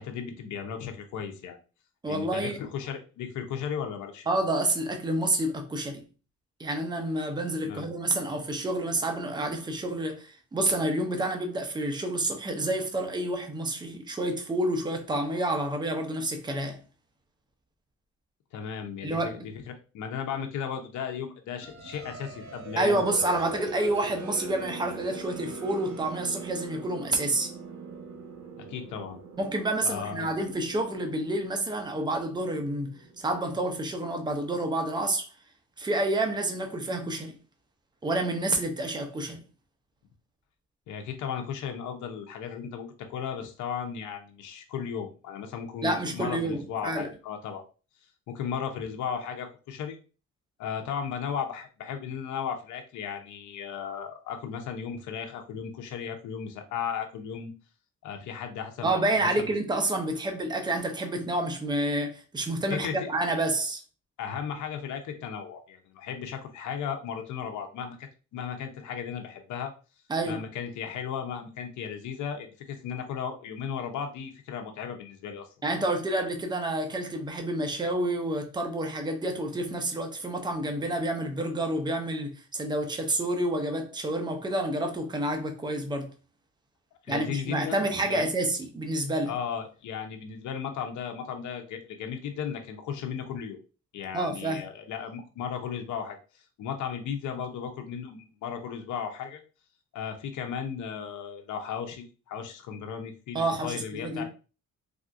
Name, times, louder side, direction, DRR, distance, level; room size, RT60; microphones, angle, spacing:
voice 1, 0.0-1.6 2.1-4.3 7.6-7.9 18.5-23.2 28.6-29.2 29.8-30.3 40.9-47.6 48.3-50.0 50.6-57.5 58.0-59.5 62.7-63.0 64.2-69.7 70.2-75.5 87.1-88.3 89.3-93.6 93.9-96.2 96.6-99.4 99.9-104.2, left 7 dB, 75° left, 0.6 m, -35 dB
voice 2, 2.0-2.6 4.3-6.0 6.6-16.8 19.0-19.3 22.8-27.5 29.4-35.3 35.8-37.4 38.0-39.4 45.8-47.1 58.8-63.8 70.1-70.4 75.6-86.1 87.1-89.3 94.1-94.7 103.3-104.2, right 1 dB, 15° right, 0.6 m, -29 dB
sound 1, 21.6-34.1, right 4 dB, 70° right, 0.9 m, -42 dB
3.4 x 2.5 x 2.4 m
cardioid pair, 90°, 30 cm